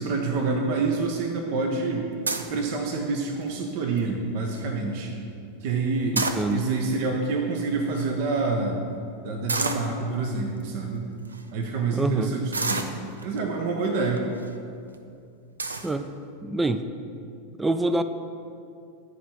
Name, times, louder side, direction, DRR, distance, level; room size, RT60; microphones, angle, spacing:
voice 1, 0.0-2.1 2.5-5.2 5.6-6.2 6.5-8.8 9.2-11.1 11.5-12.9 13.2-14.2, right 3 dB, 50° right, 1 dB, 0.9 m, -27 dB
sound 1, 2.3-2.6 3.2-3.5 4.0-4.1 4.3-4.6 5.9-6.8 7.6-7.7 7.9-8.0 9.5-9.9 10.6-10.7 11.3-11.4 12.5-13.4 14.2-14.5 14.9-15.0 15.6-15.9, right 3 dB, 80° right, 0.5 m, -29 dB
voice 2, 6.1-6.6 11.9-12.3 15.8-16.1 16.4-16.8 17.6-18.0, right 2 dB, 10° right, 10 dB, 0.4 m, -25 dB
10.0 x 4.7 x 5.8 m, 2.5 s
figure-of-eight pair, 85°, 0 cm